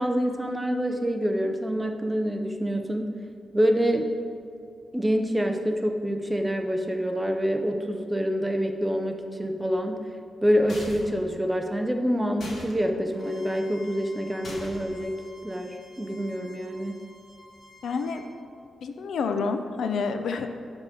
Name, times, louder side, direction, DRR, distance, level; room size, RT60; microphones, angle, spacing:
voice 1, 0.0-3.1 3.5-4.1 4.9-10.1 10.4-15.1 15.4-17.0, equal, 10° right, 4 dB, 0.5 m, -26 dB
sound 1, 10.7-11.2 12.4-12.7 14.4-14.9, left 1 dB, 50° left, 1.6 m, -40 dB
Bowed string instrument, 13.1-18.3, left 1 dB, 25° left, 1.7 m, -51 dB
voice 2, 17.8-18.2 18.8-20.5, left 5 dB, 80° left, 7 dB, 0.5 m, -28 dB
10.0 x 3.6 x 6.7 m, 2.5 s
wide cardioid pair, 165°, 0 cm